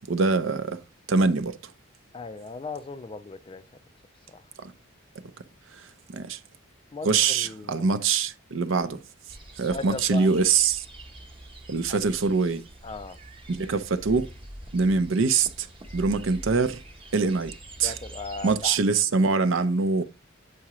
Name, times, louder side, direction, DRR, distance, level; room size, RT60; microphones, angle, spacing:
voice 1, 0.1-0.8 1.1-1.5 4.6-4.7 6.1-6.4 7.0-9.0 9.6-10.8 11.7-12.6 13.5-14.3 14.7-15.7 15.9-16.8 17.1-17.5 17.8-17.9 18.4-20.0, right 4 dB, 65° right, 0.6 m, -23 dB
voice 2, 2.1-3.6 4.3-4.4 6.9-8.0 9.7-10.3 11.9-12.0 12.8-13.2 17.8-18.8, left 3 dB, 25° left, 0.3 m, -37 dB
Birds Robin Rooster Finches farm ambience, 9.3-18.7, right 1 dB, 25° right, 0.9 m, -44 dB
8.5 x 4.8 x 3.0 m
head